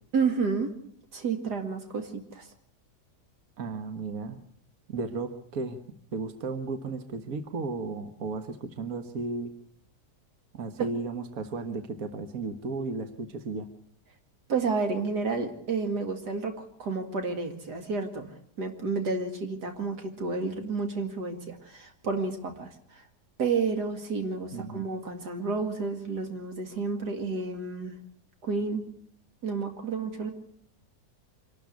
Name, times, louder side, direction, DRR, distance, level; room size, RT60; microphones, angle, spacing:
voice 1, 0.1-0.7 1.1-2.5 10.8-10.9 14.5-18.3 18.6-23.0 23.4-27.9 28.4-28.9 29.4-30.3, right 4 dB, 85° right, 5 dB, 2.8 m, -30 dB
voice 2, 3.6-4.4 4.9-5.8 6.1-9.5 10.5-13.7 24.5-24.9, right 3 dB, 60° right, 8 dB, 1.8 m, -34 dB
25.5 x 12.5 x 8.4 m, 0.62 s
omnidirectional pair, 1.7 m